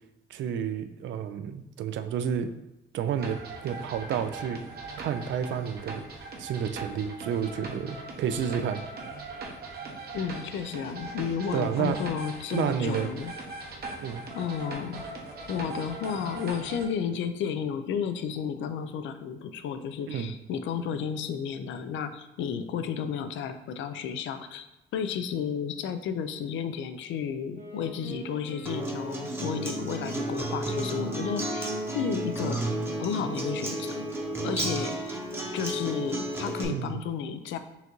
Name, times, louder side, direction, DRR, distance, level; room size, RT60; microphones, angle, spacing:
voice 1, 0.3-2.5 2.9-4.6 5.0-6.1 6.4-8.8 11.5-12.0 12.5-13.1 14.0-14.2 20.1-20.3 36.7-37.0, right 8 dB, 70° right, 10 dB, 0.4 m, -30 dB
sound 1, 3.2-16.9, right 3 dB, 50° right, 0.9 m, -40 dB
voice 2, 10.1-13.3 14.3-15.0 15.5-24.7 24.9-32.7 33.0-34.0 34.4-35.2 35.5-37.6, left 7 dB, 70° left, 10 dB, 0.4 m, -32 dB
Wind instrument woodwind instrument, 27.5-35.2, right 1 dB, 35° right, 1.2 m, -45 dB
Acoustic guitar, 28.7-36.6, right 1 dB, 10° right, 0.8 m, -32 dB
5.5 x 2.6 x 3.0 m, 0.92 s
cardioid pair, 90°, 20 cm